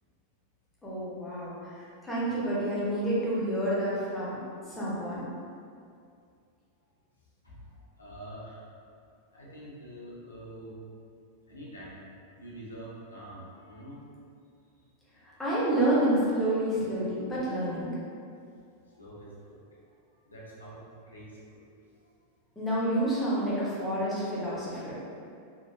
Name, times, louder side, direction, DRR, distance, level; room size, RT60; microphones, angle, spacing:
voice 1, 0.8-4.4 4.7-5.3 15.2-18.0 22.6-25.0, right 1 dB, 10° left, -9 dB, 0.8 m, -29 dB
voice 2, 7.4-8.7 9.3-10.8 11.5-12.0 12.3-14.0 18.9-19.8 20.2-21.7 22.0-22.1, right 1 dB, 80° left, -7 dB, 0.6 m, -46 dB
2.8 x 2.2 x 2.3 m, 2.3 s
figure-of-eight pair, 90°, 0 cm